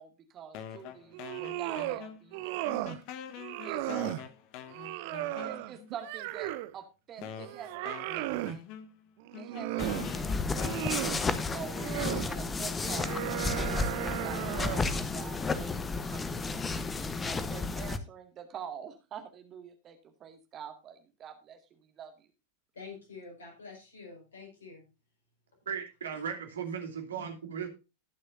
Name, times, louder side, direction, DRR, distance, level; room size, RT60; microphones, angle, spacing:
voice 1, 0.0-2.9 3.6-3.8 5.4-8.3 9.4-11.9 12.3-16.7 17.0-22.3, right 8 dB, 30° right, 2.1 m, -46 dB
sound 1, 0.5-2.4 2.7-5.9 6.6-6.7 7.2-12.6, left 9 dB, 45° left, 1.1 m, -45 dB
sound 2, 1.1-2.0 2.3-3.0 3.4-4.2 4.7-6.7 7.2-8.6 9.2-10.1 10.5-11.2 11.7-12.3 12.8-15.0, right 16 dB, 50° right, 0.8 m, -35 dB
sound 3, 9.8-18.0, left 4 dB, 15° left, 0.9 m, -32 dB
voice 2, 22.7-24.8, left 4 dB, 70° left, 5.1 m, -47 dB
voice 3, 25.7-27.7, right 7 dB, 65° right, 2.6 m, -37 dB
19.5 x 6.5 x 2.6 m
figure-of-eight pair, 90°, 0 cm